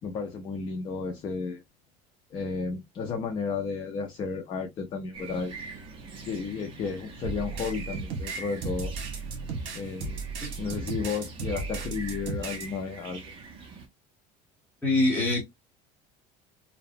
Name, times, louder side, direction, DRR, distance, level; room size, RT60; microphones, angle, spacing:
voice 1, 0.0-1.6 2.3-5.8 6.3-8.9 9.7-10.2 10.6-13.3, left 5 dB, 30° left, 0.4 m, -33 dB
sound 1, 5.1-13.9, right 3 dB, 30° right, 0.6 m, -43 dB
sound 2, 7.2-12.7, right 4 dB, 70° right, 1.1 m, -35 dB
voice 2, 14.8-15.4, left 2 dB, 10° left, 1.1 m, -24 dB
2.7 x 2.0 x 2.5 m
cardioid pair, 170°, 17 cm